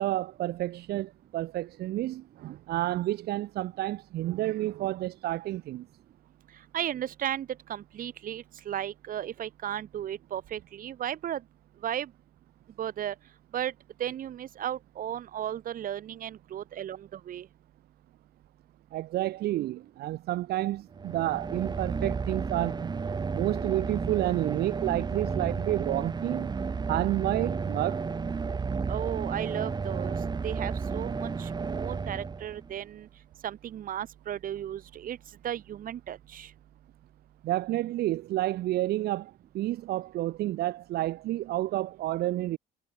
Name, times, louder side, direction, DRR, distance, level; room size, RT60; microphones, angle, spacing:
voice 1, 0.0-5.9 18.9-22.9 23.3-26.5 26.9-28.0 37.4-42.6, right 15 dB, 70° right, 1.1 m, -30 dB
voice 2, 6.7-11.4 11.8-12.1 12.8-13.1 13.5-13.7 14.0-17.5 28.9-30.2 30.4-33.1 33.4-35.2 35.4-36.5, right 10 dB, 55° right, 2.4 m, -35 dB
sound 1, 20.9-32.8, right 5 dB, 25° right, 1.3 m, -32 dB
cardioid pair, 110°, 17 cm